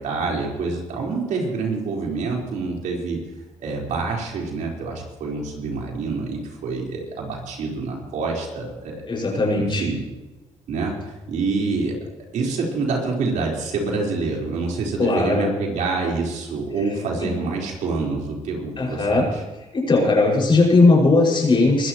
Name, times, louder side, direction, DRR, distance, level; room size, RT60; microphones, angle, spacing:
voice 1, 0.0-3.2 3.6-9.0 9.5-10.0 10.7-11.9 12.3-19.2, right 3 dB, 75° right, -2 dB, 4.4 m, -26 dB
voice 2, 9.1-9.9 15.0-15.5 16.8-16.9 17.2-17.3 18.8-19.3 19.7-21.9, left 3 dB, 40° left, -1 dB, 5.8 m, -18 dB
23.0 x 14.0 x 3.1 m, 1.2 s
cardioid pair, 75°, 13 cm